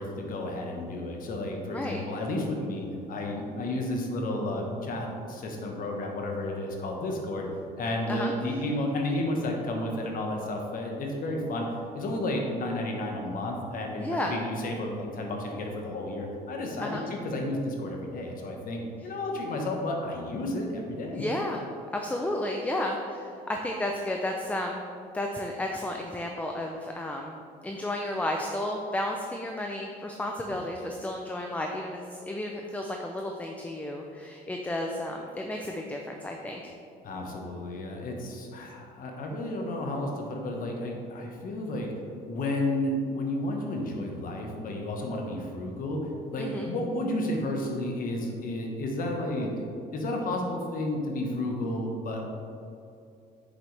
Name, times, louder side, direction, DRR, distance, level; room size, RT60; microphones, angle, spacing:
voice 1, 0.0-7.5 7.8-21.2 37.0-41.9 42.3-49.5 49.9-52.2, left 1 dB, 55° left, 1 dB, 1.3 m, -32 dB
voice 2, 14.0-14.3 16.8-17.0 21.1-21.6 21.9-24.8 25.1-27.3 27.6-36.7 46.4-46.7, left 1 dB, 10° left, 2 dB, 0.6 m, -32 dB
7.8 x 6.6 x 3.4 m, 2.5 s
cardioid pair, 110°, 17 cm